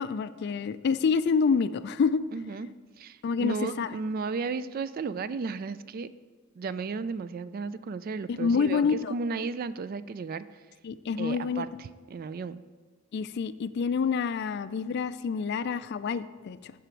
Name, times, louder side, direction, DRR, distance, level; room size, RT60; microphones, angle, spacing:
voice 1, 0.0-2.2 3.2-3.9 8.3-9.1 10.8-11.6 13.1-16.7, left 5 dB, 55° left, 14 dB, 0.3 m, -27 dB
voice 2, 2.3-2.7 3.0-6.1 6.6-10.5 11.2-12.6, right 4 dB, 45° right, 14 dB, 0.3 m, -34 dB
13.5 x 5.0 x 4.5 m, 1.4 s
head